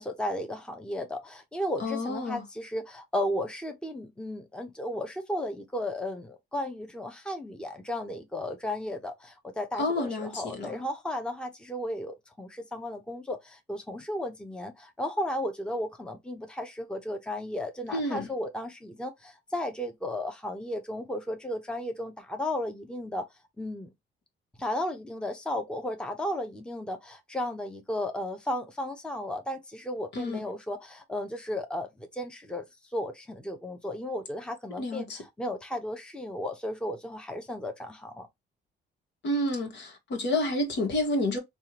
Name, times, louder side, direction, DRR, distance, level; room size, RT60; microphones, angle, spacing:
voice 1, 0.0-23.2 23.6-23.9 24.6-32.7 32.9-38.3, left 1 dB, 5° left, 0.8 m, -34 dB
voice 2, 1.8-2.4 9.8-10.8 17.9-18.3 30.1-30.4 34.8-35.2 39.2-41.4, left 1 dB, 65° left, 1.4 m, -29 dB
3.5 x 2.4 x 2.9 m
cardioid pair, 90°, 20 cm